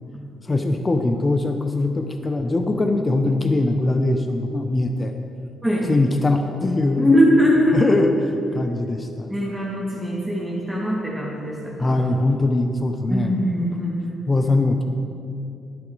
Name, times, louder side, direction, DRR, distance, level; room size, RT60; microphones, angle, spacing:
voice 1, 0.4-5.1 5.9-7.1 7.7-9.3 11.8-13.4 14.3-14.8, left 2 dB, 25° left, 6 dB, 0.7 m, -21 dB
voice 2, 7.0-7.8 9.3-12.0 13.1-13.9, equal, 5° right, -6 dB, 2.2 m, -21 dB
11.0 x 9.3 x 4.7 m, 2.6 s
cardioid pair, 90°, 0 cm